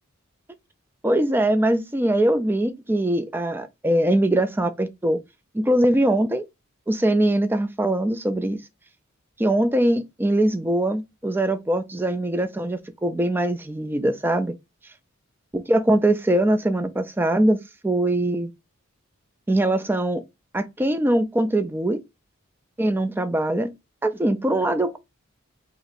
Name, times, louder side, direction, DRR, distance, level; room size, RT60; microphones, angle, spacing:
voice 1, 1.0-5.2 5.5-6.4 6.9-8.6 9.4-14.5 15.5-18.5 19.5-20.2 20.5-22.0 22.8-23.7 24.0-25.0, right 1 dB, 10° right, 0.3 m, -22 dB
2.9 x 2.6 x 4.1 m
head